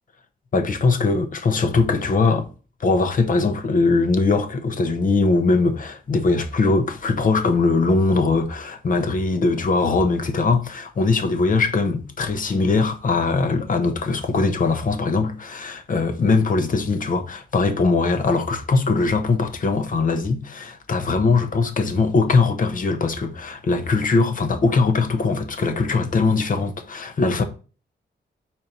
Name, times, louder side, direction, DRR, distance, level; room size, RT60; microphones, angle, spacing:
voice 1, 0.5-2.5 2.8-27.4, left 3 dB, 50° left, 0.9 m, -21 dB
4.5 x 4.3 x 5.3 m
wide cardioid pair, 115°, 18 cm